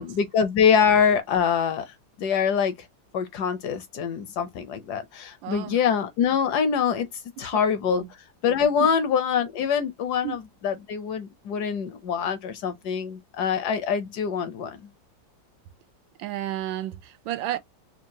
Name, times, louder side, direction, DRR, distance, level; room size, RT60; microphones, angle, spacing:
voice 1, 0.0-2.7 3.1-7.1 7.4-8.0 8.4-14.8, left 7 dB, 70° left, 1.1 m, -24 dB
voice 2, 5.4-5.8 7.4-7.5 7.8-8.1 8.8-8.9 10.2-10.4 16.2-17.6, right 13 dB, 85° right, 1.3 m, -32 dB
4.6 x 2.3 x 2.7 m
omnidirectional pair, 2.1 m